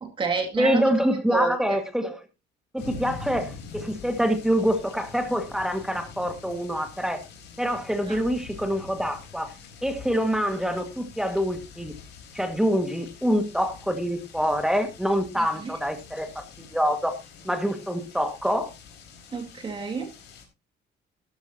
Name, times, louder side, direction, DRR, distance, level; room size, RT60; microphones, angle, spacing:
voice 1, 0.0-0.9 1.3-1.8 8.1-8.2 15.4-15.7 19.3-20.1, right 5 dB, 25° right, 3 dB, 2.3 m, -30 dB
voice 2, 0.6-2.2 2.7-7.2 7.6-9.5 9.8-11.9 12.3-17.1 17.4-18.7, equal, 5° right, 7 dB, 1.7 m, -26 dB
sound 1, 2.8-20.5, left 5 dB, 65° left, 3.8 m, -45 dB
13.5 x 12.5 x 2.8 m, 0.26 s
cardioid pair, 155°, 19 cm